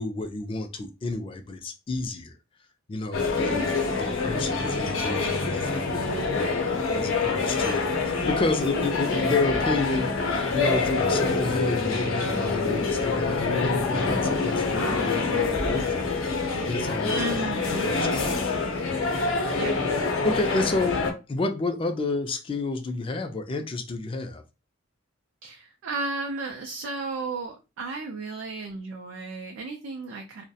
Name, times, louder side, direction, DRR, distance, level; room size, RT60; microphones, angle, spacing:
voice 1, 0.0-2.3 2.9-5.7 6.3-10.1 10.5-17.4 17.7-18.3 18.7-18.9 19.4-19.6 20.2-21.0 21.3-24.4, left 2 dB, 25° left, 0.3 m, -30 dB
sound 1, 3.1-21.1, left 3 dB, 85° left, 0.6 m, -26 dB
voice 2, 3.5-3.8 17.1-17.9 19.5-19.7 20.3-20.9 25.4-30.4, right 3 dB, 85° right, 0.4 m, -34 dB
2.3 x 2.0 x 2.7 m
head